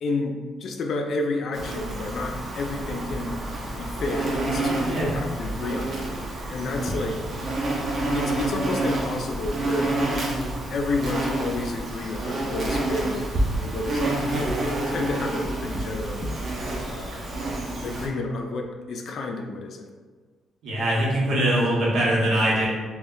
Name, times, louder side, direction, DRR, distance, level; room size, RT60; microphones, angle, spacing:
voice 1, 0.0-3.4 3.8-6.1 6.5-7.2 8.1-9.9 10.7-13.3 13.6-14.6 14.9-16.3 16.9-17.3 17.8-19.9, left 2 dB, 60° left, 3 dB, 0.3 m, -30 dB
Insect, 1.5-18.1, right 2 dB, 55° right, 0.6 m, -28 dB
voice 2, 20.6-22.7, right 1 dB, 80° right, -5 dB, 0.9 m, -22 dB
2.2 x 2.1 x 3.7 m, 1.4 s
cardioid pair, 90°, 0 cm